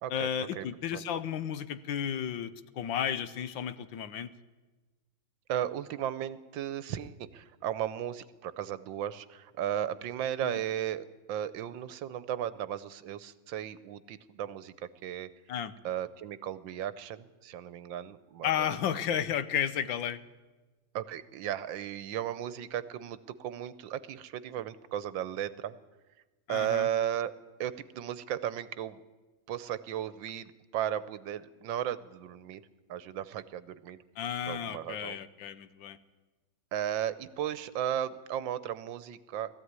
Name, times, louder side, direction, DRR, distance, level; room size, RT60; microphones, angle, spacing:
voice 1, 0.1-4.3 10.4-10.6 15.5-15.7 18.4-20.2 26.5-26.9 34.2-36.0, left 9 dB, 80° left, 14 dB, 1.6 m, -33 dB
voice 2, 5.5-14.7 15.0-15.3 15.8-18.7 20.9-25.8 26.5-27.3 27.6-29.0 29.5-32.6 32.9-34.0 34.4-35.2 36.7-39.5, right 10 dB, 75° right, 16 dB, 1.5 m, -35 dB
19.0 x 14.5 x 9.5 m, 1.2 s
omnidirectional pair, 2.1 m